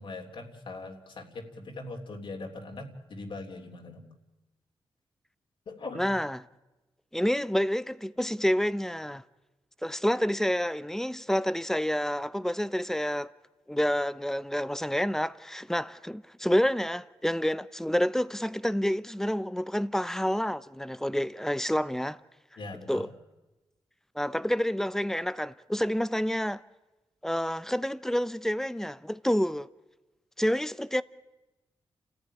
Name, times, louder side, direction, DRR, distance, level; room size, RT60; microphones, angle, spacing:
voice 1, 0.0-4.1 5.7-6.0 22.6-23.1, left 2 dB, 65° left, 3.4 m, -41 dB
voice 2, 5.9-6.4 7.1-9.2 9.8-13.3 13.7-22.2 22.9-23.1 24.1-26.6 27.2-29.7 30.4-31.0, equal, 5° left, 0.8 m, -28 dB
29.5 x 14.5 x 10.0 m
cardioid pair, 70°, 9 cm